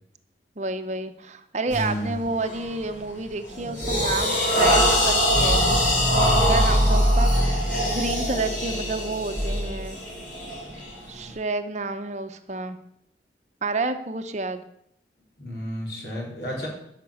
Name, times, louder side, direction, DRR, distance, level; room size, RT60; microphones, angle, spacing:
voice 1, 0.6-7.3 7.9-10.0 11.1-12.8 13.6-14.6, right 3 dB, 40° right, 9 dB, 0.8 m, -30 dB
voice 2, 1.7-2.3 15.4-16.7, equal, 65° left, -2 dB, 4.6 m, -31 dB
sound 1, 1.7-1.9 2.4-2.7 3.2-11.3, equal, 45° left, 3.9 m, -24 dB
sound 2, 5.3-9.5, equal, ahead, 0.7 m, -24 dB
12.0 x 6.0 x 8.4 m, 0.74 s
head